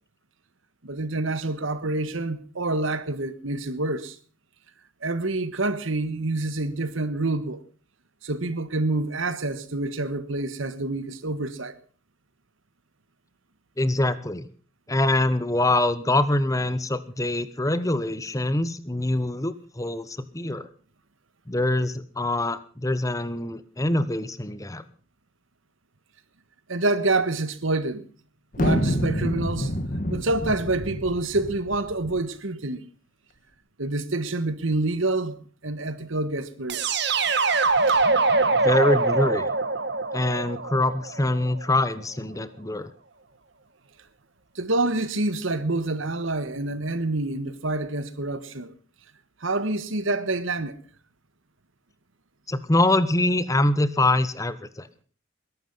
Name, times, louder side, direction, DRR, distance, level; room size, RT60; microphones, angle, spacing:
voice 1, 0.8-4.1 5.0-7.6 8.2-11.8 26.7-28.0 28.6-29.7 30.1-32.9 33.8-35.4 35.6-36.8 37.9-38.0 44.5-48.7 49.4-50.8, right 2 dB, 75° right, 1.5 m, -27 dB
voice 2, 13.8-14.5 14.9-20.7 21.5-24.8 38.5-39.5 40.1-42.9 52.5-54.9, left 2 dB, 15° left, 0.9 m, -24 dB
sound 1, 28.5-32.2, equal, 40° left, 1.6 m, -27 dB
sound 2, 36.7-41.6, right 3 dB, 55° right, 1.7 m, -23 dB
21.5 x 11.5 x 5.5 m
head